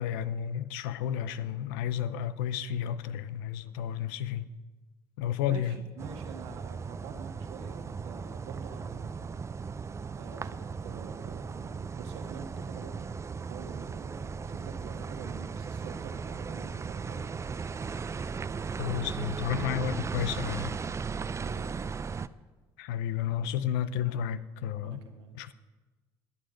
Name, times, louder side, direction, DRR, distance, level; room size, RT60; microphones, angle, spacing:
voice 1, 0.0-4.5 5.2-5.8 18.8-20.8 22.8-25.1 25.3-25.5, left 9 dB, 85° left, 0.7 m, -32 dB
voice 2, 5.4-9.4 10.1-13.1 13.4-17.3 21.3-21.9 24.8-25.4, right 6 dB, 80° right, 1.8 m, -46 dB
sound 1, 6.0-22.3, right 5 dB, 25° right, 0.5 m, -37 dB
21.5 x 8.1 x 5.2 m
supercardioid pair, 75°, 11 cm